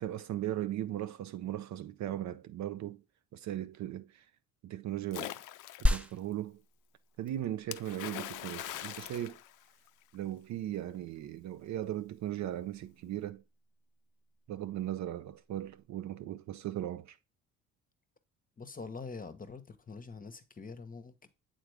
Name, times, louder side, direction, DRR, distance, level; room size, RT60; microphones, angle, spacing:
voice 1, 0.0-3.0 3.3-4.3 4.6-5.4 5.8-6.6 7.2-9.4 10.1-13.4 14.5-17.2, right 12 dB, 50° right, 0.5 m, -38 dB
Splash splatter, 5.1-6.1 7.7-10.2, left 14 dB, 60° left, 0.5 m, -42 dB
sound 1, 5.9-15.8, left 1 dB, 5° right, 0.5 m, -39 dB
voice 2, 18.6-21.3, left 4 dB, 25° left, 0.9 m, -45 dB
7.8 x 3.8 x 3.4 m
hypercardioid pair, 50°, 36 cm